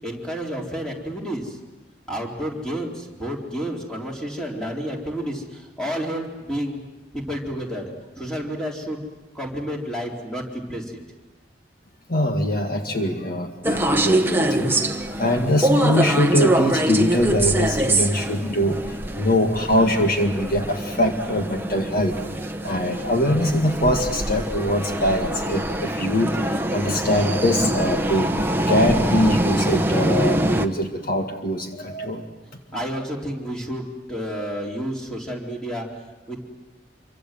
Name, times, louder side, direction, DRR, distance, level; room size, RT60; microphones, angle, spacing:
voice 1, 0.0-1.6 2.1-6.8 7.1-9.0 9.3-11.0 32.7-35.9 36.3-36.4, equal, 5° left, -1 dB, 4.2 m, -30 dB
voice 2, 12.1-14.8 15.2-22.2 22.6-28.3 28.7-32.3, left 1 dB, 55° left, 3 dB, 2.0 m, -23 dB
sound 1, 13.6-30.7, right 1 dB, 10° right, 1.1 m, -24 dB
27.5 x 24.5 x 7.7 m, 1.1 s
head